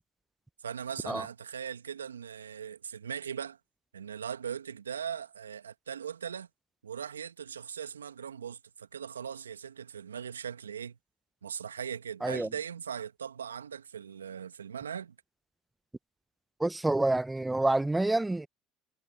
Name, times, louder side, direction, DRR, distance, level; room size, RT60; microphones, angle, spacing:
voice 1, 0.6-3.6 3.9-6.5 6.8-11.0 11.4-15.2, right 8 dB, 85° right, 1.7 m, -39 dB
voice 2, 16.6-18.5, right 2 dB, 10° right, 0.8 m, -27 dB
hypercardioid pair, 65°, 0 cm